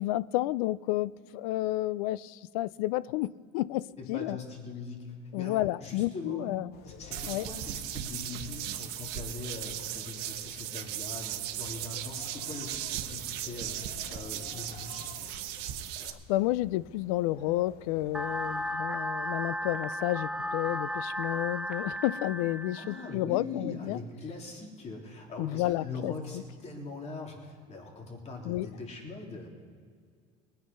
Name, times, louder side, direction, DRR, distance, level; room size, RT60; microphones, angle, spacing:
voice 1, 0.0-4.4 5.3-6.7 7.3-7.5 16.0-24.0 25.4-26.1 28.4-28.7, left 16 dB, 90° left, 0.4 m, -31 dB
voice 2, 4.0-5.1 5.3-6.5 6.8-15.1 22.7-29.5, left 3 dB, 40° left, 3.2 m, -41 dB
sound 1, 6.7-18.7, left 8 dB, 65° left, 0.9 m, -52 dB
sound 2, 7.1-16.1, right 12 dB, 70° right, 1.2 m, -37 dB
sound 3, 18.1-23.1, equal, 5° right, 0.7 m, -34 dB
20.0 x 8.9 x 5.5 m
supercardioid pair, 100°, 18 cm